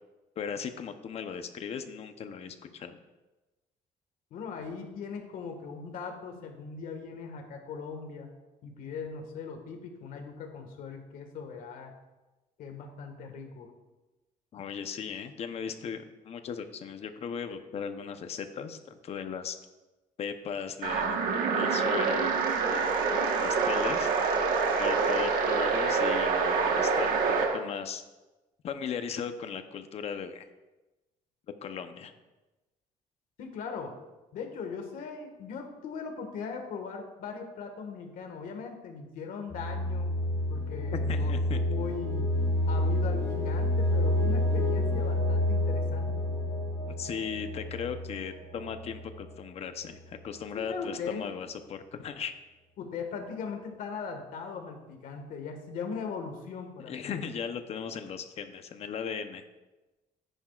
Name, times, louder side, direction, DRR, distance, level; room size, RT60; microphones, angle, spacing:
voice 1, 0.4-3.0 14.5-19.6 20.2-22.4 22.7-24.1 24.8-28.0 28.6-30.5 31.6-32.1 40.9-41.6 46.9-52.3 56.9-59.4, left 7 dB, 45° left, 8 dB, 0.8 m, -37 dB
voice 2, 4.3-8.3 8.6-11.9 12.6-13.7 33.4-34.0 34.3-40.2 40.5-42.3 42.7-46.1 50.5-51.2 52.8-57.2, left 5 dB, 75° left, 4 dB, 1.7 m, -39 dB
sound 1, 20.8-27.6, right 5 dB, 85° right, 1.3 m, -26 dB
sound 2, 39.5-49.3, left 1 dB, 15° left, 3.6 m, -29 dB
14.5 x 10.0 x 2.4 m, 1.1 s
cardioid pair, 160°, 14 cm